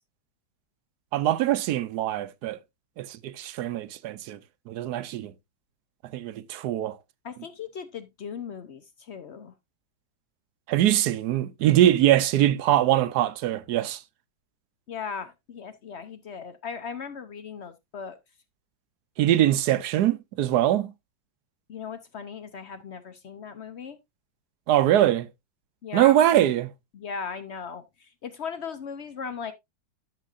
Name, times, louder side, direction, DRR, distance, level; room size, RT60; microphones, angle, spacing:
voice 1, 1.1-2.6 3.0-4.4 4.7-5.3 6.1-7.0 10.7-14.0 19.2-20.9 24.7-25.3 25.9-26.7, right 12 dB, 70° right, 1.0 m, -22 dB
voice 2, 7.2-9.5 14.9-18.2 21.7-24.0 25.8-26.2 26.9-29.5, left 6 dB, 65° left, 0.6 m, -37 dB
12.0 x 6.9 x 2.4 m
omnidirectional pair, 2.0 m